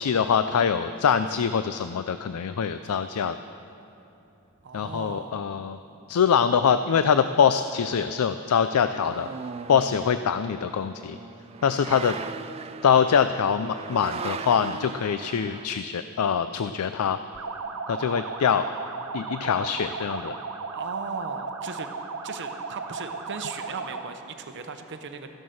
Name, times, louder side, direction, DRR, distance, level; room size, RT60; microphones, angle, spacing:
voice 1, 0.0-3.4 4.7-5.8 6.1-9.3 9.7-11.2 11.6-12.2 12.8-17.2 17.9-18.6 19.1-20.4, left 7 dB, 90° left, 11 dB, 0.4 m, -24 dB
sound 1, 4.6-4.7 8.6-15.7, right 5 dB, 30° right, 0.3 m, -39 dB
voice 2, 4.6-5.5 20.7-21.9 22.2-25.3, right 5 dB, 55° right, 6 dB, 0.8 m, -37 dB
sound 2, 17.3-24.2, right 4 dB, 85° right, 1.1 m, -35 dB
14.5 x 11.0 x 6.4 m, 2.9 s
head